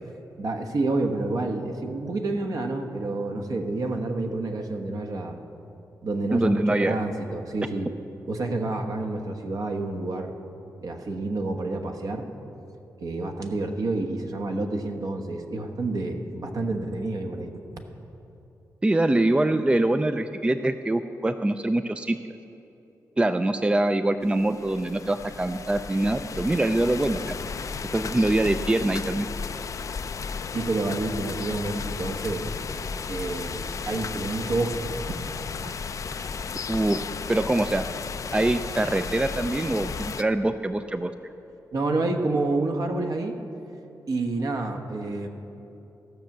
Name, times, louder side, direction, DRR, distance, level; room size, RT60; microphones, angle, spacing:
voice 1, 0.4-5.3 6.0-7.9 8.3-10.3 10.8-12.3 13.0-17.5 30.5-32.5 33.1-35.1 41.7-43.4 44.1-45.3, right 2 dB, 60° right, 4 dB, 1.2 m, -28 dB
voice 2, 6.3-7.0 18.8-22.3 23.2-27.4 27.9-29.3 36.7-37.0 37.3-37.9 38.3-41.1, right 1 dB, 15° right, 9 dB, 0.4 m, -24 dB
sound 1, 24.2-40.2, left 5 dB, 55° left, 0.4 m, -34 dB
14.5 x 5.9 x 7.4 m, 2.9 s
cardioid pair, 70°, 7 cm